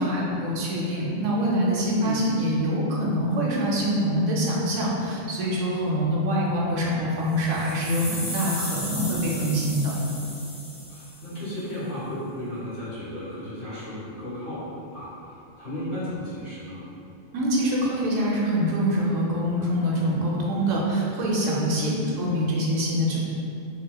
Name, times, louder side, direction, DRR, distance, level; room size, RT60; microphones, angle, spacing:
voice 1, 0.0-9.9 17.3-23.2, equal, 75° right, -4 dB, 0.9 m, -25 dB
sound 1, 7.3-11.5, left 2 dB, 80° left, 1.0 m, -36 dB
voice 2, 10.9-16.8 21.8-22.0, left 1 dB, 45° left, -11 dB, 1.2 m, -34 dB
3.9 x 2.4 x 2.2 m, 2.7 s
omnidirectional pair, 1.3 m